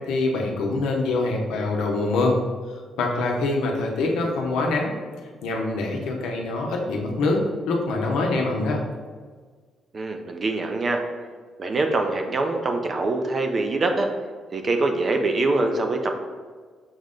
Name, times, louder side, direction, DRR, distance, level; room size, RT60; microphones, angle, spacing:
voice 1, 0.1-2.4 3.0-4.9 5.4-7.4 7.7-8.8, left 2 dB, 90° left, 0 dB, 0.7 m, -24 dB
voice 2, 9.9-11.0 11.6-14.1 14.5-16.1, right 2 dB, 40° right, 4 dB, 0.5 m, -24 dB
6.2 x 2.1 x 3.7 m, 1.5 s
cardioid pair, 90°, 0 cm